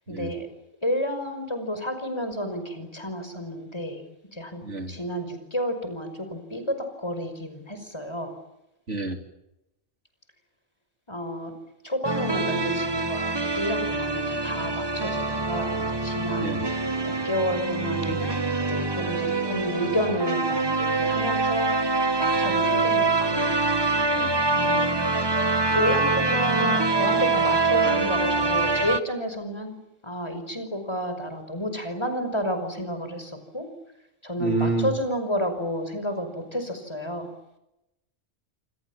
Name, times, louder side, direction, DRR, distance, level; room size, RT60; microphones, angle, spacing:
voice 1, 0.1-0.5 0.8-4.0 4.3-8.4 11.1-11.5 11.8-21.8 22.2-23.5 24.5-24.9 25.7-29.8 30.0-33.7 34.2-37.3, equal, 25° left, 8 dB, 5.7 m, -31 dB
voice 2, 4.6-4.9 8.9-9.2 16.4-16.6 24.1-24.4 34.4-34.9, right 3 dB, 80° right, 5 dB, 3.7 m, -28 dB
sound 1, 12.0-29.0, right 3 dB, 20° right, 1.2 m, -25 dB
27.5 x 27.0 x 7.5 m, 0.89 s
omnidirectional pair, 1.2 m